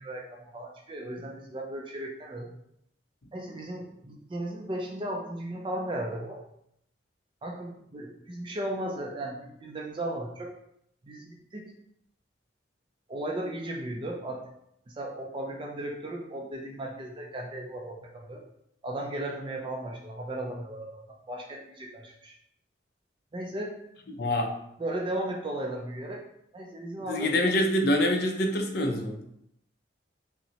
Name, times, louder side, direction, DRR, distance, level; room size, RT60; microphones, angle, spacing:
voice 1, 0.0-2.5 3.3-6.4 7.4-10.5 11.0-11.7 13.1-14.4 14.9-18.4 18.8-21.0 21.3-22.3 23.3-23.7 24.8-26.2 26.5-27.3, right 1 dB, 25° right, 0 dB, 0.4 m, -36 dB
voice 2, 24.2-24.5 27.1-29.2, left 1 dB, 55° left, 2 dB, 0.6 m, -25 dB
5.4 x 2.1 x 2.8 m, 0.75 s
head